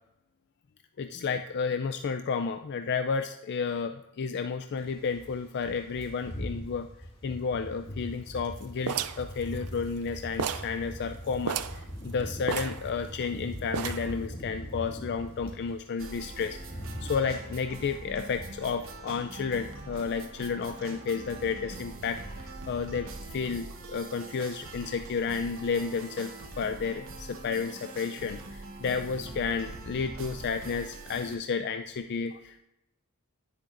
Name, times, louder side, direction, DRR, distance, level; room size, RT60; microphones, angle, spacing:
voice 1, 1.0-6.9 7.2-16.6 17.0-32.6, left 5 dB, 50° left, 8 dB, 0.4 m, -32 dB
sound 1, 4.8-15.7 16.1-19.5 19.7-20.0 20.3-21.1 21.4-21.6, equal, 25° left, 2.3 m, -42 dB
sound 2, 8.9-10.1 10.4-10.8 11.1-11.2 11.4-11.8 12.5-13.3 13.7-14.2, right 8 dB, 85° right, 0.4 m, -33 dB
sound 3, 16.0-31.4, right 2 dB, 60° right, 1.0 m, -43 dB
10.5 x 10.0 x 2.5 m, 0.90 s
head